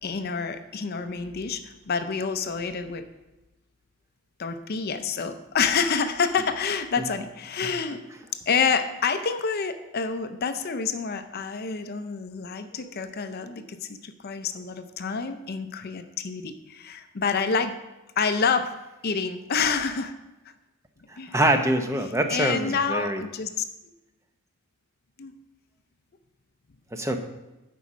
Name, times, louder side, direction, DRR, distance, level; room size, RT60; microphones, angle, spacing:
voice 1, 0.0-3.1 4.4-8.0 8.5-17.7 18.2-18.7 19.0-20.1 21.2-21.4 22.3-23.6 25.2-25.3, left 5 dB, 45° left, 9 dB, 0.5 m, -28 dB
voice 2, 21.1-23.2 26.9-27.2, right 1 dB, 15° right, 5 dB, 0.6 m, -24 dB
8.3 x 5.1 x 6.1 m, 1.0 s
head